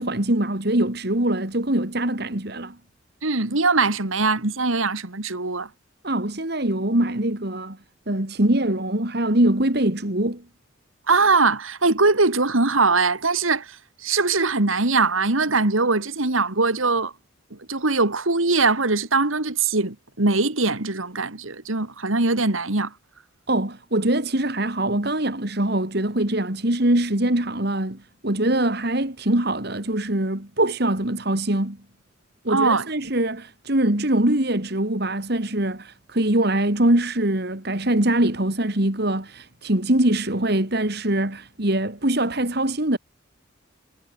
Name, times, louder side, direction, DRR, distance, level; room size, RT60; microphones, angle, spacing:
voice 1, 0.0-2.8 6.0-7.8 8.1-10.4 23.5-31.8 32.4-43.0, right 1 dB, 55° right, 2.7 m, -23 dB
voice 2, 3.2-5.7 11.1-13.7 14.0-17.1 17.7-22.9 32.5-32.9, right 3 dB, 85° right, 2.6 m, -21 dB
head